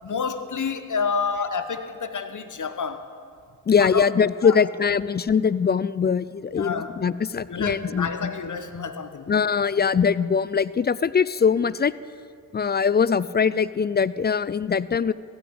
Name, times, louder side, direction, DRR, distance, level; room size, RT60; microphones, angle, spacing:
voice 1, 0.0-3.1 3.8-4.0 4.4-4.6 6.6-6.9 7.5-9.3, left 5 dB, 50° left, 10 dB, 1.1 m, -29 dB
voice 2, 3.7-8.3 9.3-11.9 12.5-15.1, left 6 dB, 25° left, 18 dB, 0.3 m, -22 dB
15.5 x 6.1 x 8.8 m, 2.1 s
supercardioid pair, 45°, 40 cm